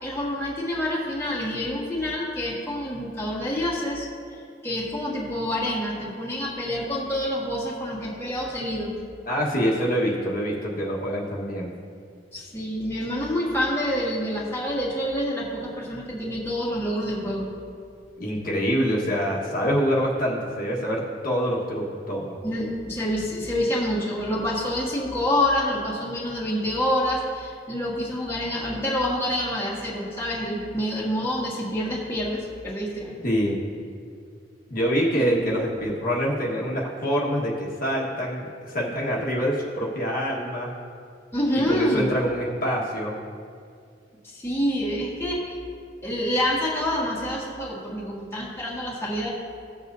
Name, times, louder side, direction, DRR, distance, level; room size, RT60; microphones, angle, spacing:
voice 1, 0.0-8.9 12.3-17.5 22.4-33.2 35.1-35.3 41.3-42.1 44.2-45.6 46.0-49.3, left 1 dB, 15° left, -6 dB, 1.7 m, -27 dB
voice 2, 9.3-11.7 18.2-22.4 33.2-33.6 34.7-40.7 41.5-43.2, equal, 55° left, -4 dB, 1.4 m, -25 dB
16.5 x 7.3 x 2.7 m, 2.3 s
head